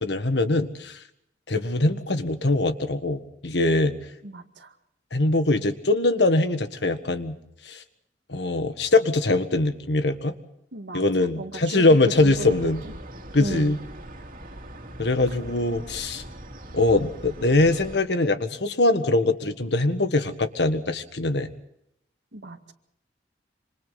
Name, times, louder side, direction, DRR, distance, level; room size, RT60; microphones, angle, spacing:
voice 1, 0.0-1.0 1.5-3.9 5.1-7.3 7.6-7.8 8.3-10.3 10.9-12.8 13.3-13.8 15.0-16.2 16.7-21.5, left 2 dB, 70° left, 9 dB, 1.6 m, -22 dB
voice 2, 4.2-4.7 10.7-12.0 12.2-12.7 13.4-13.8 22.3-22.7, right 2 dB, 90° right, 6 dB, 2.0 m, -36 dB
sound 1, 12.1-18.0, right 1 dB, 50° right, 2.4 m, -41 dB
26.5 x 26.0 x 4.1 m, 0.77 s
head